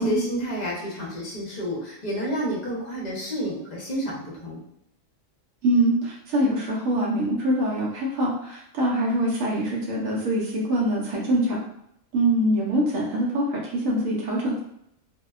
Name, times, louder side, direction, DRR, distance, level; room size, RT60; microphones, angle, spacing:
voice 1, 0.0-4.6, equal, 40° left, -4 dB, 0.7 m, -30 dB
voice 2, 5.6-11.6 12.1-14.6, right 1 dB, 85° right, -4 dB, 1.0 m, -24 dB
2.7 x 2.1 x 2.3 m, 0.75 s
omnidirectional pair, 1.4 m